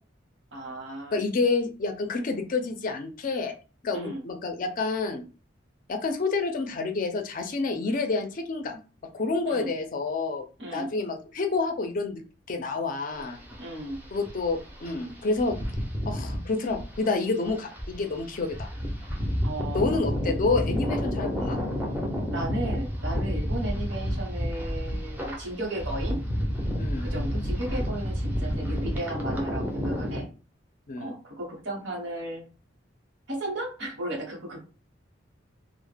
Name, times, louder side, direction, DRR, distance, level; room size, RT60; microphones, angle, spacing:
voice 1, 0.5-1.2 3.9-4.2 9.5-9.7 10.6-10.9 13.6-14.0 19.4-20.3 22.3-26.2 27.0-30.3 31.0-32.5 33.3-34.6, right 1 dB, 70° right, 0 dB, 0.9 m, -35 dB
voice 2, 1.1-3.5 3.8-5.2 5.9-8.8 9.1-10.4 10.7-12.2 12.5-13.4 14.1-15.6 16.1-18.7 19.7-21.6 26.8-27.1 30.9-31.1, left 3 dB, 45° left, 5 dB, 0.4 m, -28 dB
sound 1, 13.1-30.2, equal, 10° right, 0.5 m, -30 dB
2.1 x 2.0 x 3.2 m, 0.34 s
head